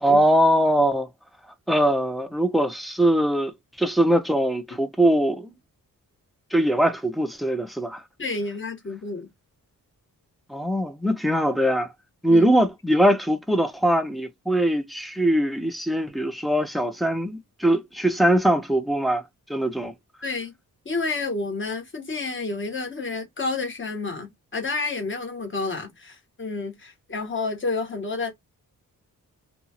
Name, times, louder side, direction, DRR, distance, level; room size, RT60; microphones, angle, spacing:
voice 1, 0.0-1.1 1.7-3.5 3.8-5.5 6.5-8.0 10.5-11.9 12.2-19.2 19.5-19.9, right 1 dB, ahead, 0.5 m, -21 dB
voice 2, 8.2-9.3 12.3-12.4 20.2-20.5 20.8-28.3, left 3 dB, 35° left, 1.3 m, -30 dB
2.6 x 2.3 x 2.8 m
wide cardioid pair, 145°, 36 cm